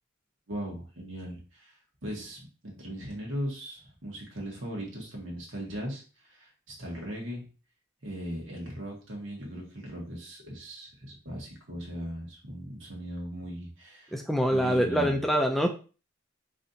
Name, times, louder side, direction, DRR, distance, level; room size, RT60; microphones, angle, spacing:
voice 1, 0.5-7.5 8.0-14.2 14.5-15.2, equal, 75° right, -1 dB, 1.5 m, -38 dB
voice 2, 14.1-15.7, equal, ahead, 3 dB, 0.3 m, -25 dB
4.0 x 3.2 x 2.7 m, 0.35 s
head